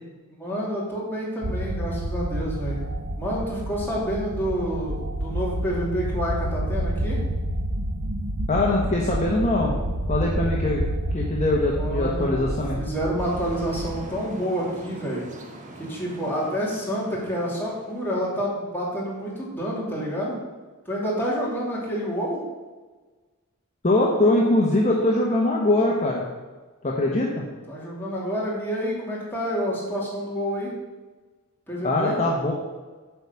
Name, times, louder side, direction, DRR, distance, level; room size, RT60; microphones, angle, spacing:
voice 1, 0.3-2.8 3.2-7.2 11.7-12.4 12.8-15.2 15.9-20.4 20.9-22.4 27.7-30.7 31.7-32.2, equal, 10° left, -6 dB, 2.8 m, -28 dB
sound 1, 1.4-14.1, right 1 dB, 70° right, 0.9 m, -29 dB
voice 2, 8.5-9.7 10.1-10.8 11.1-12.8 23.8-26.2 26.8-27.4 31.8-32.5, left 2 dB, 30° left, -3 dB, 1.1 m, -22 dB
sound 2, 13.2-18.3, right 1 dB, 35° right, 1.1 m, -43 dB
9.1 x 4.9 x 6.9 m, 1.3 s
head